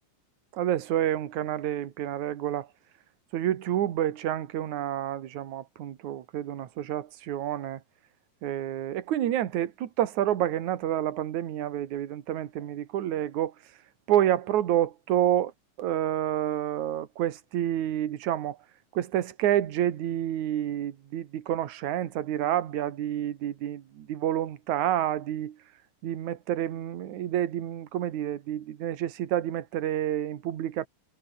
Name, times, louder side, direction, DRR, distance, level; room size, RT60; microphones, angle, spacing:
voice 1, 0.5-2.7 3.3-7.8 8.4-13.5 14.1-15.5 15.8-18.6 18.9-25.6 26.0-30.9, right 11 dB, 65° right, 2.9 m, -29 dB
omnidirectional pair, 3.7 m